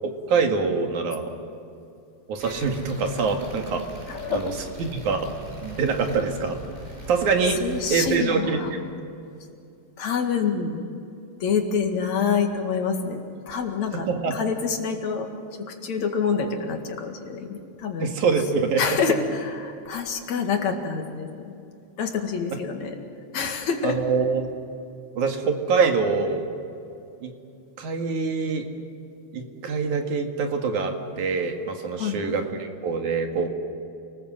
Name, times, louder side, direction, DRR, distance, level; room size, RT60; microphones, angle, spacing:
voice 1, 0.3-1.3 2.3-3.9 4.3-4.5 4.8-5.2 5.6-6.6 7.1-7.6 7.9-8.6 14.1-14.3 18.0-18.8 23.8-24.5 25.2-26.5 27.2-27.3 27.8-28.7 29.3-33.5, right 5 dB, 80° right, 3 dB, 3.5 m, -24 dB
sound 1, 2.4-7.9, right 1 dB, 15° right, 7.8 m, -41 dB
voice 2, 4.1-4.6 7.6-8.7 10.0-10.8 11.4-18.1 18.8-21.6 22.0-23.0 23.3-24.0 31.9-32.2, left 6 dB, 70° left, 4 dB, 3.3 m, -27 dB
28.5 x 19.5 x 7.6 m, 2.6 s
omnidirectional pair, 3.4 m